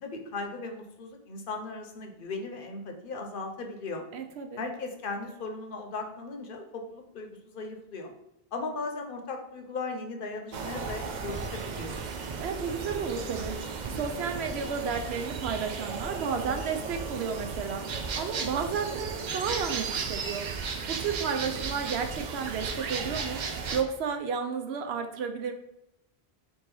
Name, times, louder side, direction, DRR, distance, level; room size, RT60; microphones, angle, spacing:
voice 1, 0.0-4.0 4.6-8.1 8.5-12.0, left 3 dB, 60° left, 4 dB, 0.8 m, -37 dB
voice 2, 4.1-4.6 12.4-17.9 18.1-25.5, right 6 dB, 85° right, 6 dB, 0.9 m, -32 dB
sound 1, 10.5-23.8, right 5 dB, 55° right, 0.5 m, -35 dB
3.6 x 2.7 x 4.6 m, 0.88 s
omnidirectional pair, 1.0 m